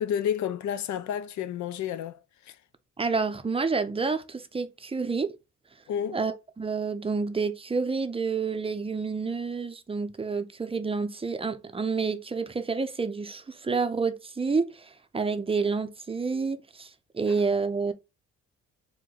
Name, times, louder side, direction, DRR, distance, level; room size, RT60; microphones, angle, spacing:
voice 1, 0.0-2.2 2.5-2.6 5.9-6.2, left 9 dB, 70° left, 0.6 m, -30 dB
voice 2, 3.0-5.3 6.1-17.9, right 4 dB, 20° right, 0.5 m, -29 dB
4.7 x 2.2 x 3.7 m
cardioid pair, 90°, 30 cm